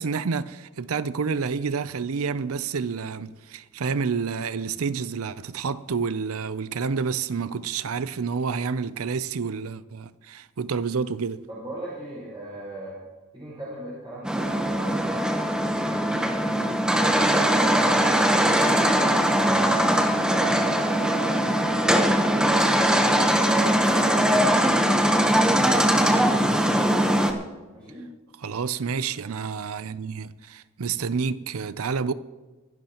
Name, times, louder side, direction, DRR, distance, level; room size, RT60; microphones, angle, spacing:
voice 1, 0.0-11.4 28.4-32.1, right 5 dB, 75° right, 0.6 m, -29 dB
voice 2, 11.5-13.0 13.3-18.5 19.3-25.3 27.7-28.1, right 1 dB, 25° right, 5.1 m, -39 dB
sound 1, 14.2-27.3, right 1 dB, 5° right, 1.0 m, -21 dB
24.5 x 12.0 x 3.0 m
head